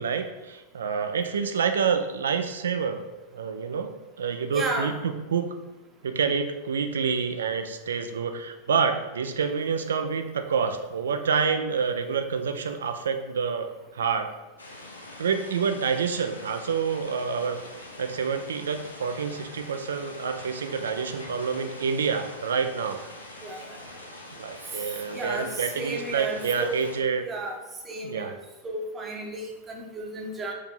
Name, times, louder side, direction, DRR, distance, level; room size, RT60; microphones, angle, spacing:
voice 1, 0.0-3.0 3.3-5.6 6.0-14.3 15.2-23.0 24.3-27.2 28.0-28.4, right 6 dB, 65° right, 7 dB, 0.4 m, -28 dB
voice 2, 4.5-4.9 23.4-23.8 25.1-26.8 27.2-27.6 27.9-28.4 28.6-30.5, right 2 dB, 20° right, 1 dB, 0.8 m, -33 dB
sound 1, 14.6-27.0, left 2 dB, 75° left, 0.5 m, -44 dB
4.6 x 2.7 x 3.8 m, 1.0 s
figure-of-eight pair, 90°, 0 cm